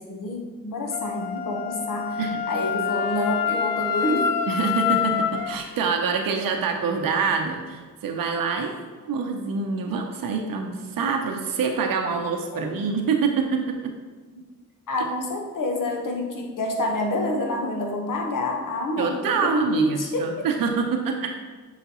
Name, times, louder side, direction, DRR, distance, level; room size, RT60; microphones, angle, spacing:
voice 1, 0.0-2.2 2.5-4.3 12.5-12.8 14.9-20.5, left 1 dB, 65° left, 1 dB, 1.2 m, -27 dB
Wind instrument woodwind instrument, 0.9-5.6, left 8 dB, 80° left, 0.5 m, -26 dB
voice 2, 4.5-8.7 9.1-13.9 19.0-21.4, right 5 dB, 75° right, 3 dB, 0.8 m, -26 dB
6.9 x 5.0 x 3.0 m, 1.4 s
cardioid pair, 60°, 35 cm